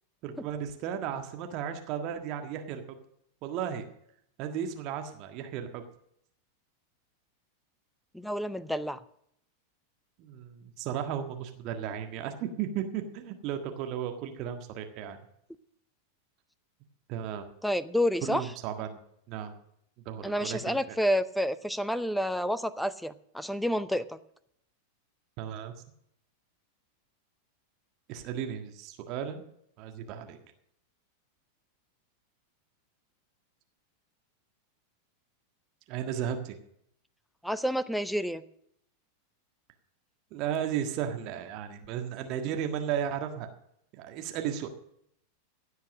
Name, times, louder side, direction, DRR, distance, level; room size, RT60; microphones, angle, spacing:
voice 1, 0.2-2.8 3.4-3.8 4.4-5.8 10.2-15.2 17.1-17.4 18.2-19.0 19.3-19.5 20.0-21.0 25.4-25.7 28.1-29.4 29.8-30.4 35.9-36.6 40.3-43.5 44.0-44.7, right 9 dB, 40° right, 6 dB, 1.6 m, -34 dB
voice 2, 8.1-9.0 17.6-18.4 20.2-24.0 37.4-38.4, equal, ahead, 17 dB, 0.7 m, -29 dB
16.5 x 8.2 x 6.4 m, 0.71 s
figure-of-eight pair, 90°, 0 cm